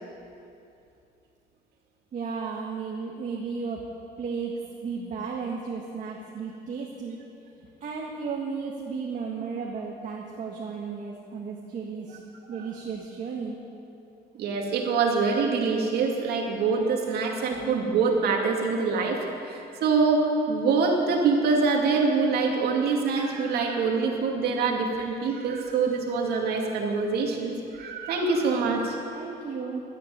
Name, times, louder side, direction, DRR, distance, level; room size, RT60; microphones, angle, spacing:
voice 1, 2.1-3.9 4.2-7.2 7.8-12.2 12.5-13.6 29.1-29.8, right 5 dB, 50° right, -1 dB, 1.8 m, -34 dB
voice 2, 14.4-29.0, right 4 dB, 70° right, 1 dB, 2.5 m, -25 dB
12.5 x 9.5 x 9.3 m, 2.7 s
cardioid pair, 110°, 17 cm